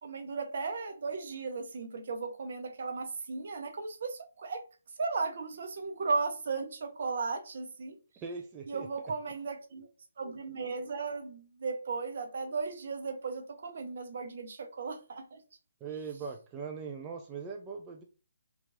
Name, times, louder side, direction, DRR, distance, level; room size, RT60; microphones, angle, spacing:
voice 1, 0.0-4.6 5.0-8.0 8.7-9.9 10.2-15.4, right 4 dB, 55° right, 0.7 m, -36 dB
voice 2, 8.2-8.9 15.8-18.0, right 5 dB, 20° right, 0.3 m, -40 dB
2.9 x 2.4 x 2.6 m
figure-of-eight pair, 145°, 0 cm